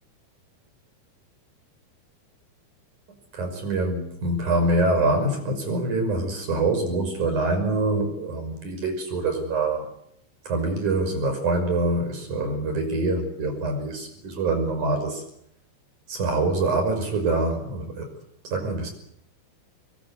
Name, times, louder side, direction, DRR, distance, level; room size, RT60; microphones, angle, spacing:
voice 1, 3.3-9.9 10.4-15.2 16.1-18.1 18.4-18.9, right 2 dB, 40° right, 6 dB, 6.8 m, -25 dB
26.5 x 22.0 x 8.1 m, 0.74 s
omnidirectional pair, 5.8 m